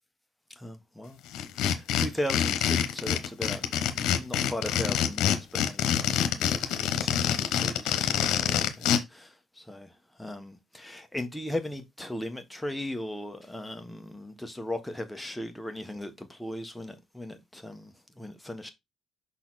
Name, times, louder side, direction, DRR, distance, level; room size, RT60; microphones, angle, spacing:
voice 1, 0.6-1.2 1.5-9.9 10.2-18.7, left 1 dB, 5° left, 1.3 m, -38 dB
sound 1, 1.3-9.0, left 9 dB, 90° left, 0.9 m, -26 dB
5.9 x 4.2 x 4.1 m
cardioid pair, 90°, 0 cm